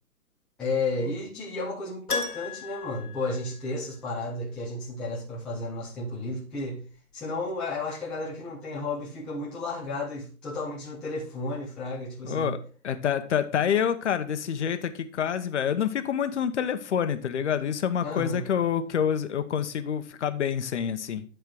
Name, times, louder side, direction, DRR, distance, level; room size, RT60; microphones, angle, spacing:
voice 1, 0.6-6.8 7.1-12.5 18.0-18.4, left 2 dB, ahead, 0.5 m, -33 dB
Keyboard (musical), 2.1-4.1 4.4-4.5 7.2-7.3 7.5-7.6, left 4 dB, 85° left, 1.3 m, -35 dB
voice 2, 12.2-12.6 12.8-21.2, left 8 dB, 50° left, 1.0 m, -27 dB
9.9 x 4.5 x 4.6 m
figure-of-eight pair, 130°, 44 cm